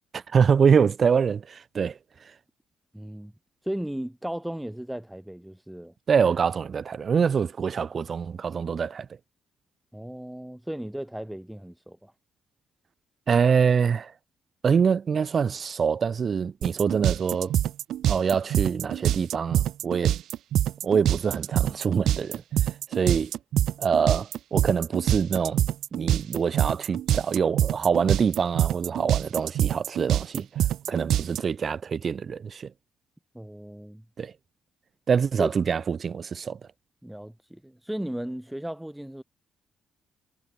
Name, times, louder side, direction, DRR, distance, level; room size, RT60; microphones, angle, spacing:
voice 1, 0.1-2.0 6.1-9.1 13.3-14.1 14.6-17.5 18.1-20.1 20.8-22.4 22.9-23.3 23.8-25.6 25.9-32.7 34.2-34.3 35.1-36.6, right 6 dB, 45° right, 2.7 m, -25 dB
voice 2, 2.9-3.3 3.6-5.9 9.9-12.1 33.3-34.0 35.4-35.5 37.0-39.2, right 1 dB, 5° right, 2.7 m, -35 dB
sound 1, 16.6-31.4, right 12 dB, 75° right, 2.0 m, -25 dB
cardioid pair, 90°, 0 cm